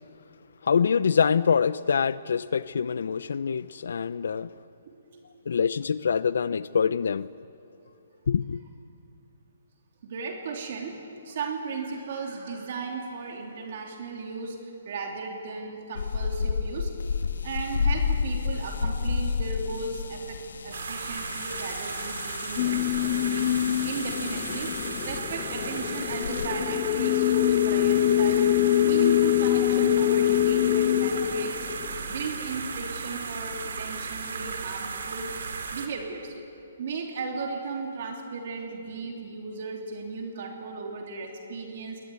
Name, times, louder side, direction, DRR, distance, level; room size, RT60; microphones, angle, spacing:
voice 1, 0.6-4.5 5.5-7.3 8.3-8.6, left 6 dB, 70° left, 17 dB, 0.6 m, -25 dB
voice 2, 10.0-11.0 11.2-16.9 17.4-23.6 23.8-28.5 28.8-31.7 32.1-35.3 35.7-36.4 36.8-42.0, right 4 dB, 50° right, 1 dB, 3.2 m, -36 dB
sound 1, 15.9-26.5, left 5 dB, 90° left, 1.6 m, -32 dB
sound 2, 20.7-35.9, right 5 dB, 70° right, 3.3 m, -36 dB
sound 3, 22.6-32.3, left 13 dB, 30° left, 0.5 m, -24 dB
24.5 x 20.5 x 9.6 m, 2.7 s
hypercardioid pair, 165°, 0 cm